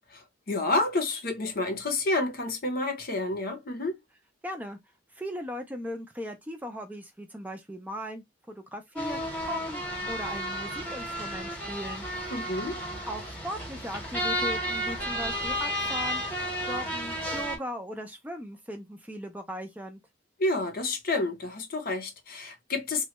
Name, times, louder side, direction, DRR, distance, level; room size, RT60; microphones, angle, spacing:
voice 1, 0.1-4.0 12.3-12.8 20.4-23.0, left 2 dB, 50° left, 0.7 m, -29 dB
voice 2, 4.4-4.8 5.1-12.1 13.1-16.2 16.6-20.0, equal, 10° right, 0.5 m, -38 dB
sound 1, 9.0-17.6, equal, 10° left, 1.0 m, -32 dB
3.1 x 2.2 x 2.9 m
head